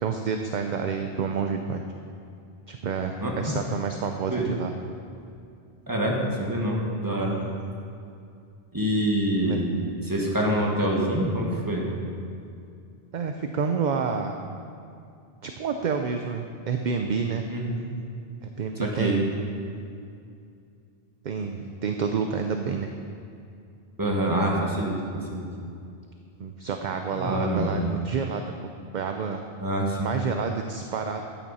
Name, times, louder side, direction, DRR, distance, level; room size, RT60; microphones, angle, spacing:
voice 1, 0.0-1.8 2.7-4.7 9.3-9.6 13.1-14.3 15.4-17.4 18.4-19.2 21.2-22.9 26.4-29.4 30.0-31.2, right 5 dB, 55° right, 5 dB, 0.6 m, -29 dB
voice 2, 3.2-3.6 4.3-4.4 5.9-7.4 8.7-9.7 10.0-11.9 17.5-17.8 18.8-19.2 24.0-25.4 27.2-27.8 29.6-30.1, right 1 dB, 20° right, -2 dB, 1.6 m, -26 dB
13.0 x 9.0 x 4.1 m, 2.5 s
omnidirectional pair, 1.0 m